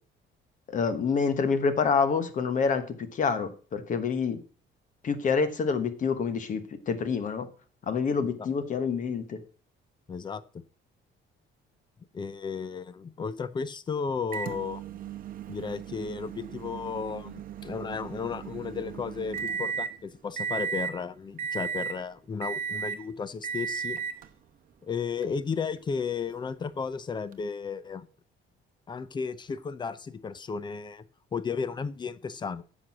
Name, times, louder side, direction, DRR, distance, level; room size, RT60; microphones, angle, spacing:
voice 1, 0.7-4.4 5.0-7.5 7.9-9.4, left 5 dB, 40° left, 11 dB, 1.2 m, -27 dB
voice 2, 10.1-10.6 12.1-14.8 15.5-24.0 24.8-28.1 28.9-31.0 31.3-32.6, left 5 dB, 20° left, 17 dB, 0.5 m, -34 dB
Microwave oven, 14.3-20.0 20.4-21.0 21.4-22.0 22.4-23.0 23.4-24.3 25.2-25.3 27.3-27.4, right 7 dB, 45° right, 0.9 m, -35 dB
10.0 x 6.2 x 6.1 m, 0.39 s
cardioid pair, 165°, 21 cm